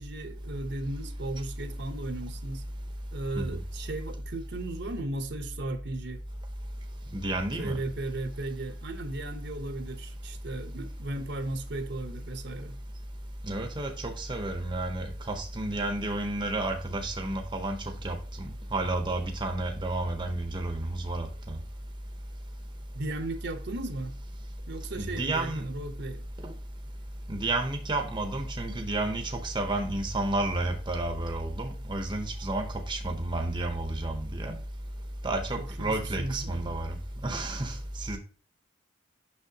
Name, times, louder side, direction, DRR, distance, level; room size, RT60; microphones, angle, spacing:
voice 1, 0.0-2.6 3.1-6.2 7.6-12.8 22.9-24.1 24.7-26.3 35.5-36.8, right 2 dB, 55° right, 0.8 m, -36 dB
voice 2, 7.1-7.8 13.4-17.8 18.0-21.6 25.0-25.7 26.4-26.5 27.3-34.6 35.2-37.0 37.2-38.2, right 2 dB, 25° right, 0.7 m, -31 dB
6.4 x 5.9 x 2.7 m
head